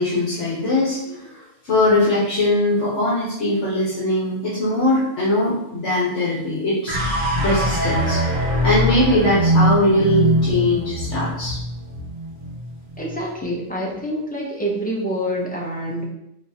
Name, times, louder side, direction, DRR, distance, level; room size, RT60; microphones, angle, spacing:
voice 1, 0.0-8.2 8.6-11.6, left 1 dB, 60° left, -7 dB, 1.2 m, -21 dB
sound 1, 6.9-13.2, equal, 60° right, 1.6 m, -22 dB
voice 2, 13.0-16.0, equal, 10° left, -3 dB, 0.4 m, -26 dB
4.1 x 3.3 x 2.7 m, 0.83 s
omnidirectional pair, 1.4 m